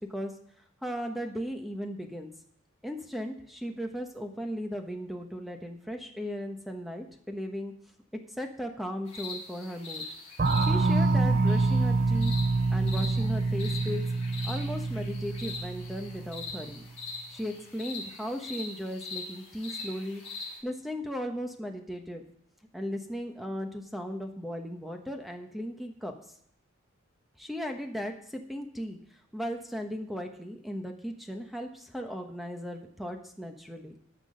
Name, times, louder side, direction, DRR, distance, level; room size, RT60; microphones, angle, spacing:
voice 1, 0.8-2.3 2.8-7.7 8.4-10.0 10.6-12.3 12.7-14.0 14.4-16.8 17.3-20.2 20.6-22.2 22.7-26.1 27.4-29.0 29.3-33.9, equal, ahead, 4 dB, 1.1 m, -36 dB
sound 1, 9.1-20.6, left 3 dB, 30° left, 5.8 m, -42 dB
sound 2, 10.4-16.7, right 3 dB, 40° right, 0.5 m, -26 dB
18.5 x 6.2 x 5.1 m, 0.67 s
head